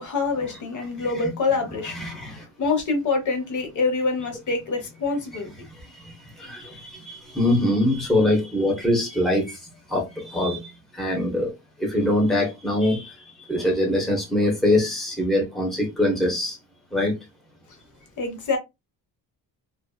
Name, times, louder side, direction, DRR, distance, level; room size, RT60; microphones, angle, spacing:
voice 1, 0.0-2.0 2.3-5.5 18.2-18.6, left 4 dB, 55° left, 0.8 m, -25 dB
voice 2, 1.9-2.4 5.8-9.6 9.9-11.5 11.8-16.6 16.9-17.2, left 1 dB, ahead, 0.8 m, -23 dB
2.5 x 2.4 x 2.3 m
cardioid pair, 155°, 37 cm